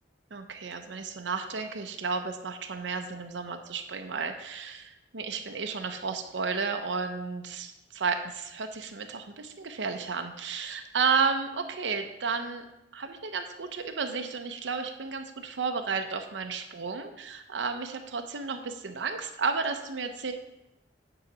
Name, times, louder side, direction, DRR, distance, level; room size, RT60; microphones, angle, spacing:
voice 1, 0.3-12.6 12.9-20.3, right 5 dB, 85° right, 6 dB, 0.7 m, -32 dB
9.6 x 4.0 x 6.0 m, 0.88 s
head